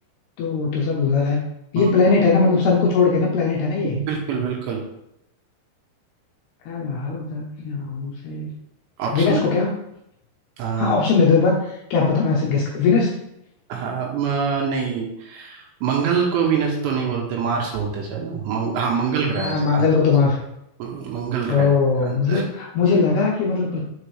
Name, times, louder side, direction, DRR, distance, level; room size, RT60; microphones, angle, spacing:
voice 1, 0.4-1.4 1.7-4.0 6.7-8.5 9.1-9.7 10.8-13.1 19.4-20.4 21.5-23.8, left 4 dB, 75° left, -2 dB, 2.5 m, -20 dB
voice 2, 3.8-4.8 9.0-9.4 10.6-10.9 13.7-19.9 20.8-21.7 22.0-22.4, right 6 dB, 80° right, 1 dB, 2.8 m, -25 dB
6.8 x 4.6 x 3.1 m, 0.81 s
omnidirectional pair, 5.4 m